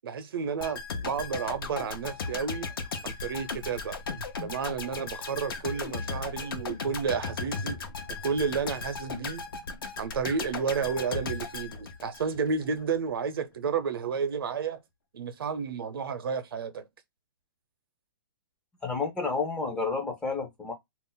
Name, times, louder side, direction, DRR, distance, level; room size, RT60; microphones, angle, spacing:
voice 1, 0.0-2.7 3.0-4.0 4.4-7.8 8.2-9.4 10.0-14.8 15.1-16.9, right 5 dB, 80° right, 0.7 m, -31 dB
sound 1, 0.6-12.6 12.9-13.1, left 4 dB, 70° left, 0.7 m, -36 dB
voice 2, 18.8-20.7, left 4 dB, 5° left, 0.4 m, -30 dB
2.4 x 2.0 x 3.7 m
hypercardioid pair, 155°, 12 cm